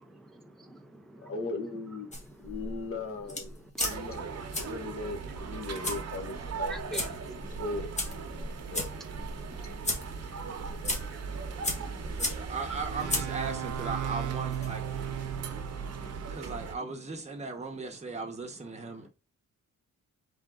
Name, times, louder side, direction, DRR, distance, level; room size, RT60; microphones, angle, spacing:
voice 1, 0.0-1.3 3.7-3.9 6.7-7.1 7.4-7.6 8.3-8.5 9.3-12.5 15.3-16.4 19.0-19.1, right 2 dB, ahead, 0.4 m, -48 dB
voice 2, 1.2-2.1 2.4-7.1 7.6-8.9, left 3 dB, 45° left, 1.0 m, -39 dB
sound 1, 2.1-15.7, left 1 dB, 20° left, 1.3 m, -38 dB
sound 2, 3.8-16.8, right 5 dB, 55° right, 0.9 m, -39 dB
voice 3, 12.2-14.9 16.3-19.1, right 4 dB, 20° right, 0.9 m, -37 dB
sound 3, 12.9-16.5, right 11 dB, 85° right, 0.6 m, -37 dB
3.7 x 3.6 x 3.6 m
wide cardioid pair, 180°, 30 cm